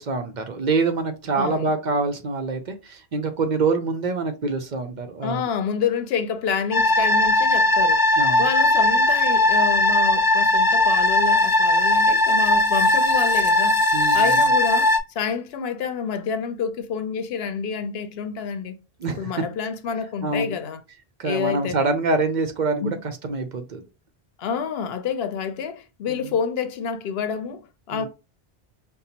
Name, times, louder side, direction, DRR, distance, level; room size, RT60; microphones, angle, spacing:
voice 1, 0.0-5.5 8.2-8.5 13.9-14.5 19.0-19.3 20.2-20.6 21.2-23.8 26.1-26.3 27.9-28.1, right 3 dB, 55° right, 0.6 m, -25 dB
voice 2, 1.3-1.7 5.2-8.1 8.4-13.8 14.1-18.8 19.2-20.8 21.2-21.8 22.8-22.9 24.4-28.1, left 6 dB, 80° left, 0.8 m, -28 dB
sound 1, 6.7-15.0, left 2 dB, 35° left, 0.3 m, -18 dB
5.3 x 2.0 x 2.8 m
omnidirectional pair, 1.0 m